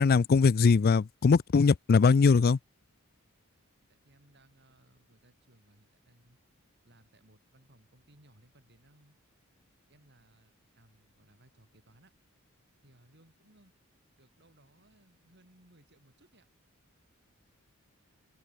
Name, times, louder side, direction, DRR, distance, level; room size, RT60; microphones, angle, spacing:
voice 1, 0.0-2.6, left 5 dB, 45° left, 0.4 m, -21 dB
voice 2, 3.8-6.4 6.8-9.2 9.9-12.1 12.8-13.7 14.2-16.5, right 1 dB, 50° right, 6.8 m, -63 dB
head